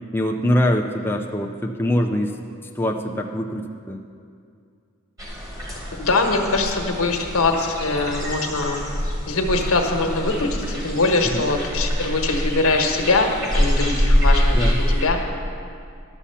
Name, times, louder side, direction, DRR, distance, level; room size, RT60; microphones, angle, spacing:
voice 1, 0.1-2.5 2.8-4.0 11.3-11.5 14.5-14.8, equal, 10° left, 1 dB, 0.4 m, -23 dB
sound 1, 5.2-15.0, equal, 15° right, 1.9 m, -24 dB
voice 2, 6.0-8.8 9.3-15.2, left 3 dB, 85° left, 3 dB, 1.2 m, -22 dB
11.5 x 7.1 x 5.7 m, 2.3 s
head